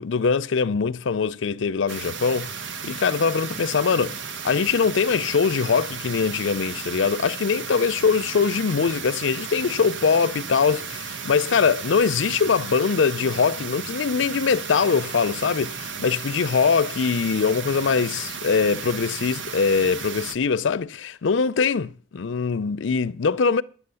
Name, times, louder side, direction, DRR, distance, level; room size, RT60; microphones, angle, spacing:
voice 1, 0.0-2.5 2.8-23.6, left 5 dB, 75° left, 0.5 m, -22 dB
sound 1, 1.9-20.4, right 6 dB, 75° right, 0.9 m, -34 dB
10.5 x 8.2 x 6.8 m
head